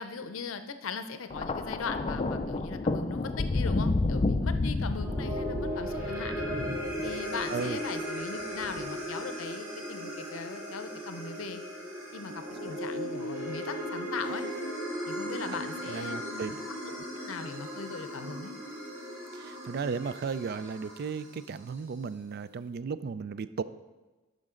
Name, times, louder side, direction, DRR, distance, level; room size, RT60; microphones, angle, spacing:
voice 1, 0.0-6.5 7.0-11.6 12.1-12.3 12.6-14.5 15.1-18.5, left 5 dB, 80° left, 10 dB, 0.6 m, -39 dB
Thunder, 1.3-7.7 8.6-8.9, left 2 dB, 30° left, 0.4 m, -30 dB
sound 1, 4.9-21.3, equal, 15° right, 2.5 m, -37 dB
voice 2, 15.9-16.6 19.3-23.6, right 5 dB, 50° right, 15 dB, 0.3 m, -35 dB
12.0 x 5.2 x 3.7 m, 1.2 s
head